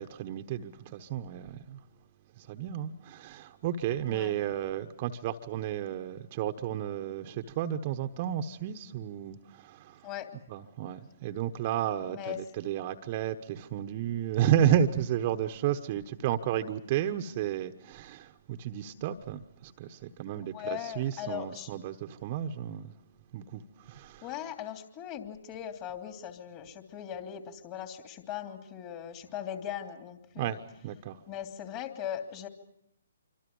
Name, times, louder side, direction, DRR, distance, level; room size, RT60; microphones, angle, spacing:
voice 1, 0.0-1.8 2.4-10.1 10.5-22.9 23.3-24.3 30.4-31.2, right 10 dB, 35° right, 1.2 m, -32 dB
voice 2, 12.1-12.4 20.4-21.7 24.2-30.5 31.3-32.5, left 10 dB, 30° left, 3.0 m, -39 dB
26.5 x 25.5 x 5.5 m
figure-of-eight pair, 130°, 0 cm